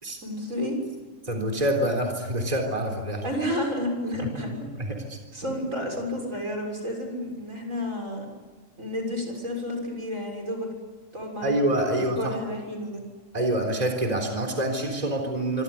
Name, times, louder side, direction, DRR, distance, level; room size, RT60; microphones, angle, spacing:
voice 1, 0.2-0.8 3.2-4.7 5.3-8.3 8.8-10.7 11.1-11.6 11.9-13.0, left 1 dB, 80° right, 2 dB, 7.0 m, -31 dB
voice 2, 1.3-3.2 4.2-4.3 4.9-5.2 11.4-12.4 13.3-15.6, right 1 dB, 30° right, 3 dB, 3.9 m, -26 dB
26.0 x 25.5 x 8.4 m, 1.4 s
omnidirectional pair, 1.4 m